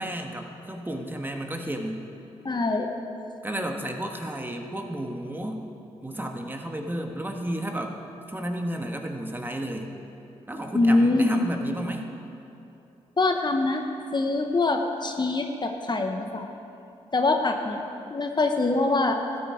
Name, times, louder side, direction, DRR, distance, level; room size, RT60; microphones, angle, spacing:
voice 1, 0.0-2.0 3.4-5.7 6.0-7.9 8.3-9.9 10.5-12.1, right 1 dB, 15° right, 3 dB, 1.4 m, -32 dB
voice 2, 2.4-2.9 10.7-11.4 13.2-13.8 14.1-16.5 17.1-17.8 18.1-19.2, left 2 dB, 35° left, 4 dB, 0.9 m, -23 dB
13.0 x 9.4 x 5.0 m, 2.8 s
supercardioid pair, 45°, 13 cm